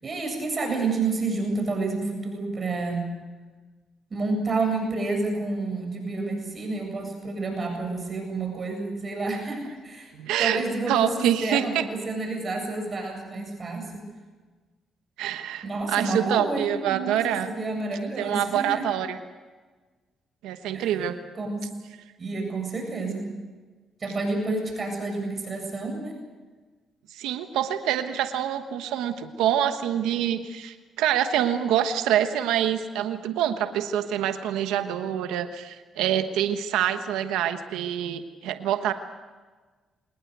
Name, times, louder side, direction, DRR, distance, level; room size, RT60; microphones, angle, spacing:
voice 1, 0.0-3.1 4.1-10.1 10.4-14.0 15.6-17.2 17.5-18.8 20.7-20.9 21.3-21.6 22.2-23.3 24.0-26.1, right 3 dB, 40° right, 3 dB, 7.8 m, -29 dB
voice 2, 10.2-10.6 10.9-11.8 15.2-17.5 18.2-19.2 20.4-21.2 27.1-38.9, right 10 dB, 90° right, 8 dB, 1.2 m, -26 dB
25.0 x 20.0 x 8.1 m, 1.4 s
cardioid pair, 80°, 0 cm